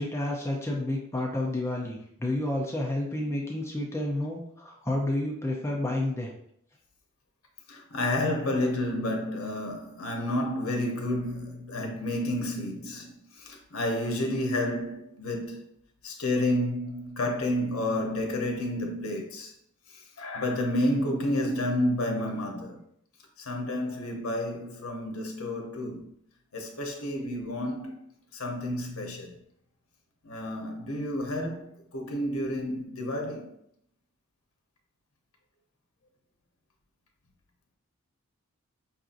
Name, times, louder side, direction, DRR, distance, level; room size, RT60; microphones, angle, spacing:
voice 1, 0.0-6.3, left 1 dB, 10° left, 0.6 m, -30 dB
voice 2, 7.7-15.7 16.0-19.5 20.2-22.8 23.4-26.1 26.5-28.0 28.3-29.4 30.2-33.6, left 1 dB, 80° left, 0.8 m, -30 dB
5.7 x 2.6 x 2.5 m
head